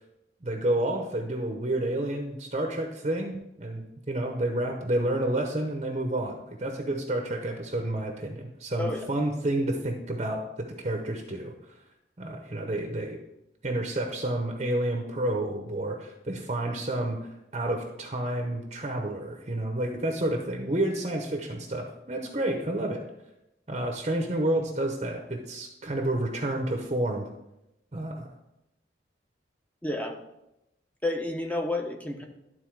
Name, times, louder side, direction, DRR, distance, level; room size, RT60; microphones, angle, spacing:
voice 1, 0.4-11.5 12.2-13.2 13.6-17.2 17.5-23.0 23.7-27.3 27.9-28.3, right 1 dB, 35° right, 3 dB, 0.8 m, -30 dB
voice 2, 29.8-30.2 31.0-32.2, left 2 dB, 10° left, 3 dB, 0.8 m, -30 dB
11.5 x 4.0 x 4.6 m, 0.89 s
head